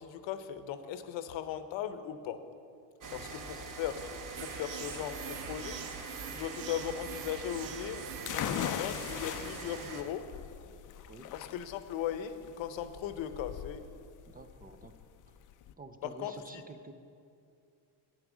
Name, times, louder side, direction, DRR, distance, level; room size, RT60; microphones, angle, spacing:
voice 1, 0.0-2.4 3.1-5.8 6.3-10.3 11.3-13.8 16.0-16.3, left 10 dB, 75° left, 11 dB, 0.9 m, -38 dB
sound 1, 3.0-10.0, right 4 dB, 45° right, 1.1 m, -43 dB
voice 2, 3.1-3.6 11.1-11.3 14.3-14.9 15.3-15.4 15.8-16.9, right 3 dB, 20° right, 8 dB, 0.5 m, -50 dB
sound 2, 4.4-9.8, right 7 dB, 90° right, 1.1 m, -45 dB
sound 3, 8.3-15.7, left 10 dB, 45° left, 0.5 m, -40 dB
10.0 x 8.9 x 6.2 m, 2.5 s
cardioid pair, 125°, 45 cm